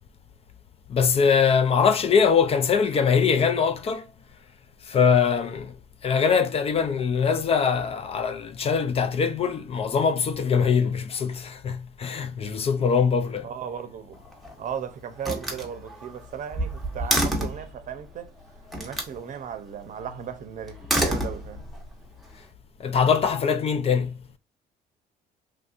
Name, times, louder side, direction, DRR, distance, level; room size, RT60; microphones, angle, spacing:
voice 1, 0.9-4.1 4.8-5.8 6.0-13.5 22.8-24.2, left 6 dB, 35° left, 0.4 m, -22 dB
voice 2, 13.4-14.2 14.6-18.3 18.8-21.6, right 8 dB, 50° right, 0.6 m, -36 dB
Slam, 14.1-14.7 15.2-17.7 18.7-19.2 20.7-21.8, right 1 dB, ahead, 0.9 m, -28 dB
3.3 x 2.6 x 2.4 m
cardioid pair, 110°, 17 cm